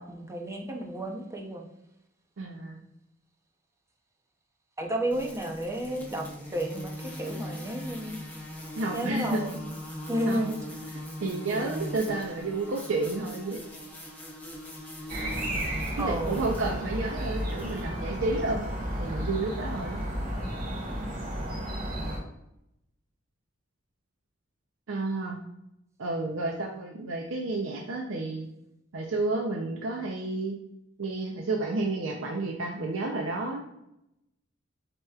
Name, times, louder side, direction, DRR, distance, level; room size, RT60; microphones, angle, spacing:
voice 1, 0.0-1.7 4.8-6.2 6.5-6.9 7.2-8.2 8.9-9.5 10.1-10.6 16.0-16.5, right 1 dB, 15° right, 2 dB, 0.6 m, -32 dB
voice 2, 2.4-2.8 8.8-9.6 10.3-10.5 10.9-13.6 16.0-20.0 24.9-25.4 26.0-28.5 28.9-30.6 31.0-33.6, right 2 dB, 75° right, 0 dB, 0.6 m, -31 dB
sound 1, 5.1-17.8, left 1 dB, 10° left, 0.9 m, -41 dB
sound 2, 15.1-22.2, equal, 45° right, 1.5 m, -33 dB
7.7 x 3.0 x 2.3 m, 0.84 s
head